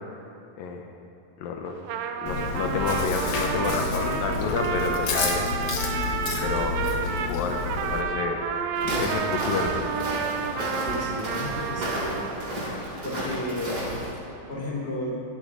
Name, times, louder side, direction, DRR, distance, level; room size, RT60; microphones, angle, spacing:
voice 1, 0.6-0.9 1.4-1.8 2.2-5.5 6.4-8.4 8.8-10.1, left 5 dB, 80° left, 3 dB, 2.7 m, -30 dB
Trumpet, 1.7-12.6, right 7 dB, 90° right, 2.5 m, -30 dB
Chewing mastication, 2.3-8.0, left 5 dB, 60° left, 1.7 m, -30 dB
Walk footsteps, 8.8-14.1, equal, 25° right, 4.9 m, -32 dB
voice 2, 10.8-12.2 13.0-13.8 14.5-15.2, left 1 dB, 20° left, -3 dB, 3.0 m, -33 dB
22.5 x 10.5 x 4.9 m, 2.6 s
omnidirectional pair, 4.0 m